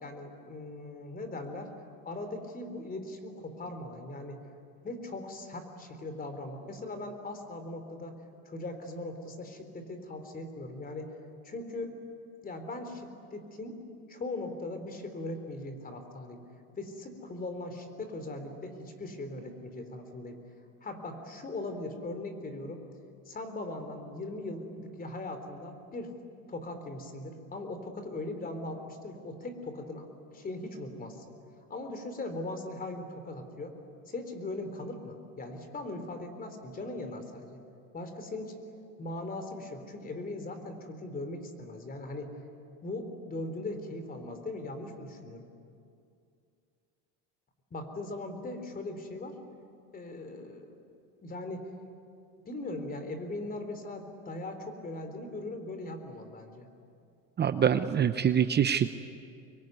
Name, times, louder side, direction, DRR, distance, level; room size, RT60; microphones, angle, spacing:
voice 1, 0.0-1.7 2.1-4.4 4.8-8.2 8.5-11.1 11.4-11.9 12.4-13.8 14.1-16.4 16.8-20.4 20.8-22.8 23.3-26.1 26.5-31.3 31.7-33.8 34.1-37.6 37.9-38.6 39.0-42.3 42.8-45.4 47.7-49.4 49.9-50.7 51.2-51.7 52.5-56.7, left 2 dB, 25° left, 8 dB, 3.8 m, -39 dB
voice 2, 57.4-59.0, right 8 dB, 30° right, 10 dB, 0.8 m, -25 dB
25.5 x 22.5 x 9.5 m, 2.5 s
supercardioid pair, 120°, 35 cm